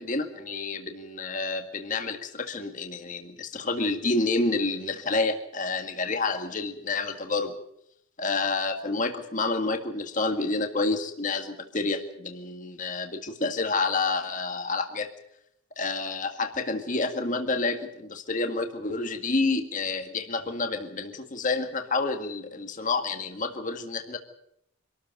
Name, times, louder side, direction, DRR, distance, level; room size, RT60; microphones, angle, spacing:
voice 1, 0.0-7.5 8.2-15.1 15.8-24.2, left 3 dB, 35° left, 6 dB, 1.9 m, -29 dB
26.0 x 13.5 x 9.1 m, 0.77 s
head